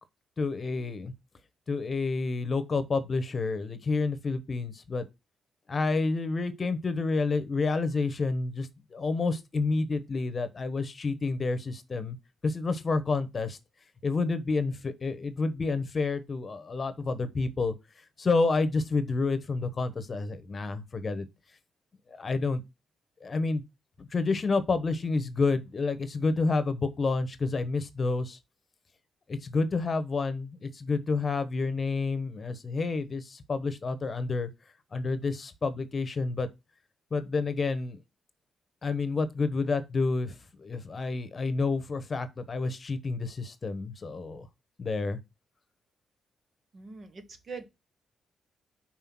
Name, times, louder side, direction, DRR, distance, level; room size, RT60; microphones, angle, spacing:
voice 1, 0.4-1.1 1.7-5.1 5.7-12.2 12.4-13.6 14.0-17.7 18.2-21.2 22.2-22.6 23.2-23.6 24.0-28.4 29.3-34.5 34.9-36.5 37.1-38.0 38.8-44.5 44.8-45.2, left 3 dB, 35° left, 1.1 m, -29 dB
voice 2, 46.7-47.6, right 4 dB, 45° right, 1.4 m, -42 dB
5.6 x 4.4 x 6.1 m
cardioid pair, 100°, 0 cm